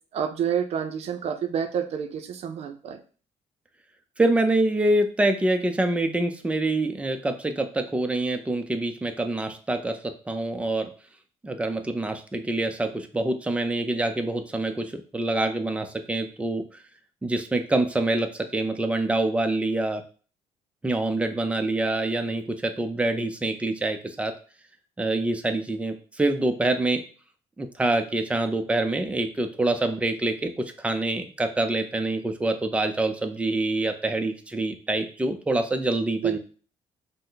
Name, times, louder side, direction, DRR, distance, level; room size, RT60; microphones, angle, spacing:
voice 1, 0.1-3.0 36.2-36.4, right 8 dB, 60° right, 6 dB, 0.5 m, -28 dB
voice 2, 4.2-10.9 11.4-16.6 17.2-20.0 20.8-24.3 25.0-27.0 27.6-36.4, right 2 dB, 10° right, 6 dB, 0.5 m, -26 dB
5.4 x 2.1 x 3.9 m, 0.40 s
cardioid pair, 125°, 12 cm